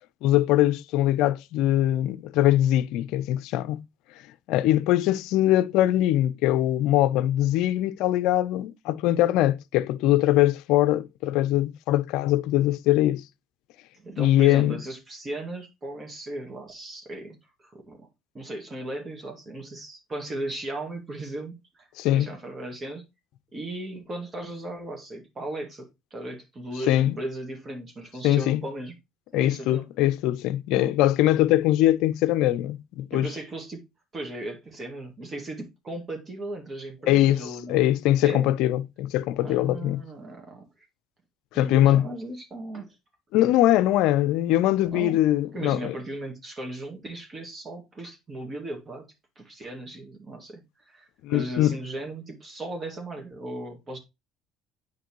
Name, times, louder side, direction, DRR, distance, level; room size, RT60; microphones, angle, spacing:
voice 1, 0.2-3.9 4.5-13.2 14.2-14.8 22.0-22.3 26.9-27.1 28.2-28.6 29.3-33.3 37.1-40.0 41.5-42.1 43.3-45.9 51.2-51.8, left 14 dB, 70° left, 0.4 m, -22 dB
voice 2, 13.9-18.1 18.3-21.9 22.1-23.0 23.5-28.9 29.3-29.8 30.7-31.2 33.1-33.8 34.1-37.8 38.2-38.5 39.4-40.6 41.5-43.0 44.8-45.2 45.5-49.1 49.4-54.0, right 1 dB, 35° right, 2.1 m, -37 dB
8.0 x 5.2 x 3.0 m
hypercardioid pair, 65°, 0 cm